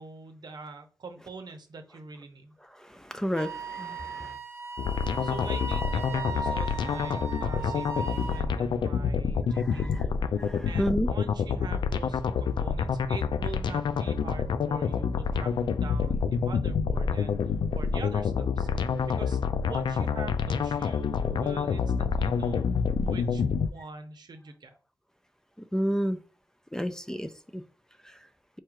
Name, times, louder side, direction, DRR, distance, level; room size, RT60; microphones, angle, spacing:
voice 1, 0.0-2.5 5.2-10.1 10.6-19.4 19.7-22.7 23.0-24.7, right 3 dB, 65° right, 0.7 m, -44 dB
voice 2, 3.1-4.3 9.7-10.0 10.5-11.1 25.7-26.2 26.7-27.6, equal, 5° left, 0.4 m, -30 dB
Wind instrument woodwind instrument, 3.4-8.5, right 4 dB, 35° right, 0.6 m, -37 dB
sound 1, 4.8-23.7, left 6 dB, 80° left, 0.3 m, -28 dB
4.4 x 2.4 x 4.5 m
wide cardioid pair, 85°, 8 cm